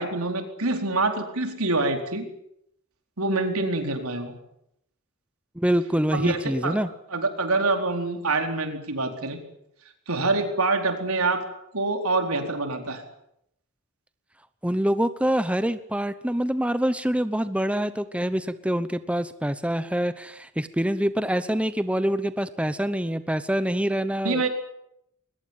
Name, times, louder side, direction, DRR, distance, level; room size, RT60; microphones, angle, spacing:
voice 1, 0.0-2.3 3.2-4.3 6.1-6.8 7.1-9.4 10.1-11.4 11.7-13.0 24.2-24.5, right 3 dB, 80° right, 5 dB, 4.4 m, -26 dB
voice 2, 5.6-6.9 14.6-24.4, equal, 5° right, 12 dB, 0.8 m, -25 dB
22.5 x 21.0 x 9.0 m, 0.77 s
head